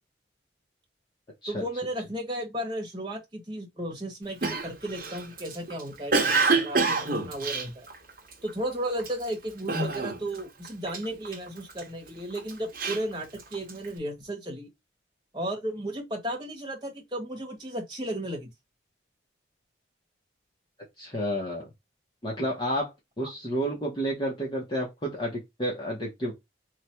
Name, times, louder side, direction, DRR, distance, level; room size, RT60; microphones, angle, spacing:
voice 1, 1.5-7.9 8.4-14.7 15.3-18.5 23.2-23.3, right 1 dB, 20° right, 1.1 m, -34 dB
Cough, 4.4-8.5 9.0-9.3 9.7-10.4 10.6-11.8 12.3-13.9, right 3 dB, 45° right, 0.8 m, -27 dB
voice 2, 21.0-21.7 22.2-26.3, equal, 25° left, 0.8 m, -31 dB
3.2 x 2.1 x 4.3 m
head